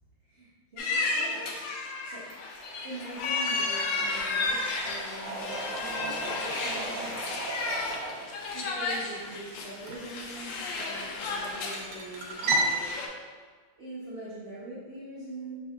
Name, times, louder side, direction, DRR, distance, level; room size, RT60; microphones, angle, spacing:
voice 1, 0.2-2.3 2.8-7.7 8.5-12.9 13.8-15.6, right 1 dB, 55° right, -8 dB, 0.6 m, -43 dB
sound 1, 0.8-13.1, left 3 dB, 75° left, 1.3 m, -33 dB
Trickle dribble / Fill (with liquid), 2.3-9.4, equal, 45° left, 1.1 m, -49 dB
sound 2, 5.2-12.8, right 2 dB, 75° right, 1.3 m, -35 dB
5.7 x 3.5 x 2.4 m, 1.5 s
omnidirectional pair, 2.1 m